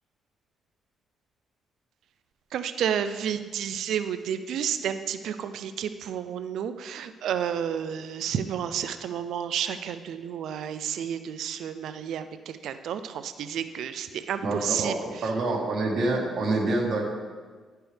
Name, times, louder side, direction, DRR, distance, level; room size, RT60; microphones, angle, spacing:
voice 1, 2.5-14.9, right 9 dB, 75° right, 10 dB, 0.4 m, -31 dB
voice 2, 14.4-17.0, right 2 dB, 55° right, -3 dB, 1.4 m, -27 dB
11.5 x 4.5 x 3.3 m, 1.4 s
cardioid pair, 90°, 0 cm